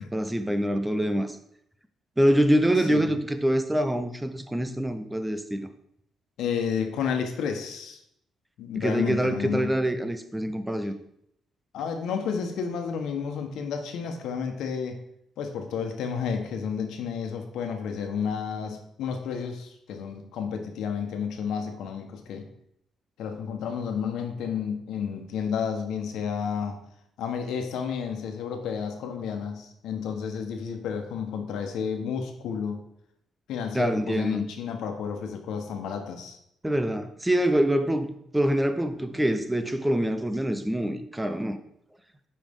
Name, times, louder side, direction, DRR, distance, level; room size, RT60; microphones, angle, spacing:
voice 1, 0.1-1.4 2.2-5.7 8.7-10.9 33.7-34.4 36.6-41.6, right 1 dB, 10° right, 9 dB, 0.7 m, -25 dB
voice 2, 6.4-8.0 8.6-9.8 11.7-15.0 15.4-22.5 23.2-26.8 27.2-32.8 33.5-36.4, left 6 dB, 80° left, 5 dB, 1.2 m, -31 dB
9.7 x 5.4 x 3.7 m, 0.74 s
cardioid pair, 90°, 0 cm